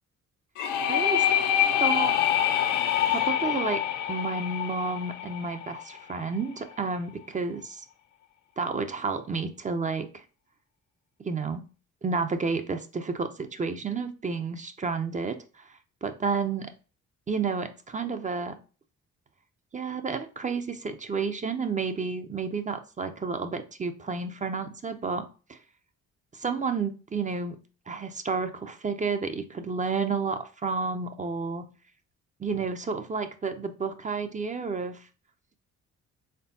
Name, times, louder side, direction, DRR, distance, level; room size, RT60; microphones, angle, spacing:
sound 1, 0.6-6.2, left 10 dB, 85° left, 0.6 m, -26 dB
voice 1, 0.9-1.2 1.8-2.2 3.1-3.8 4.1-7.8 8.6-10.2 11.2-11.6 12.0-15.7 16.0-16.7 17.3-18.6 19.7-25.6 26.3-27.6 27.9-31.7 32.4-35.1, right 4 dB, 25° right, 8 dB, 0.5 m, -31 dB
4.4 x 3.3 x 2.6 m, 0.35 s
cardioid pair, 90°, 30 cm